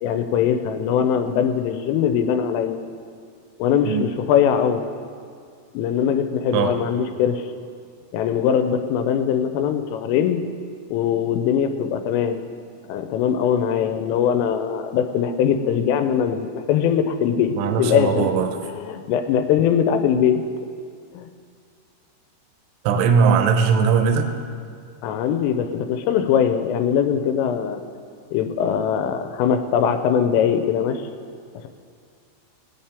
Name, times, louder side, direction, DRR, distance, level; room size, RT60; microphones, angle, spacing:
voice 1, 0.0-2.8 3.6-4.9 5.7-7.4 8.1-10.4 10.9-12.4 12.9-18.3 18.6-20.4 21.1-21.3 25.0-27.8 28.3-31.0 31.5-31.7, left 8 dB, 85° left, 7 dB, 3.2 m, -21 dB
voice 2, 17.6-18.5 22.8-24.3, right 6 dB, 85° right, 6 dB, 3.0 m, -19 dB
19.5 x 8.6 x 3.4 m, 2.3 s
omnidirectional pair, 5.8 m